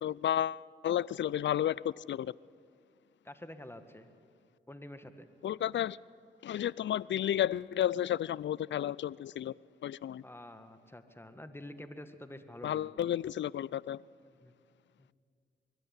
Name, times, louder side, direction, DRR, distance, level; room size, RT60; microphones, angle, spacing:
voice 1, 0.0-2.3 5.4-6.0 6.4-9.5 9.8-10.2 12.6-14.0, left 11 dB, 65° left, 0.4 m, -32 dB
voice 2, 3.2-4.1 4.7-5.3 10.2-12.9 14.2-14.5 15.0-15.1, left 1 dB, 10° left, 1.8 m, -48 dB
22.0 x 12.5 x 9.8 m
supercardioid pair, 45°, 20 cm